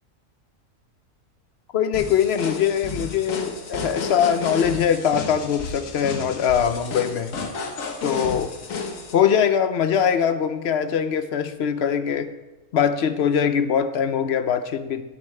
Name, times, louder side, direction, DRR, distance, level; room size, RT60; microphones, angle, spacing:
voice 1, 1.7-7.3 8.0-8.5 9.1-12.3 12.7-15.0, left 8 dB, 60° left, 10 dB, 0.8 m, -22 dB
sound 1, 1.9-9.1, left 4 dB, 75° left, 1.5 m, -32 dB
16.0 x 8.1 x 3.3 m, 1.1 s
omnidirectional pair, 1.4 m